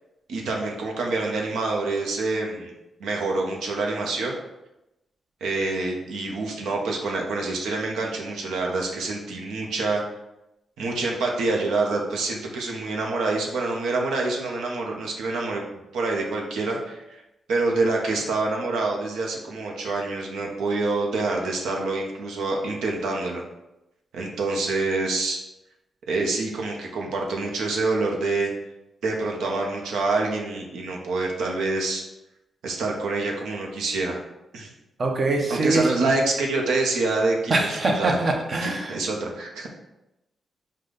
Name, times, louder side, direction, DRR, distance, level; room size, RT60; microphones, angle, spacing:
voice 1, 0.3-2.7 3.0-4.4 5.4-10.0 10.8-15.6 15.9-17.2 17.5-23.4 24.1-25.4 26.1-28.5 29.0-32.0 32.6-34.2 34.5-34.7 35.5-38.2 38.6-39.7, right 3 dB, 90° right, 0 dB, 0.7 m, -26 dB
voice 2, 35.0-35.9 37.5-39.0, right 2 dB, 50° right, 2 dB, 0.8 m, -23 dB
5.0 x 2.2 x 3.7 m, 0.92 s
cardioid pair, 70°, 0 cm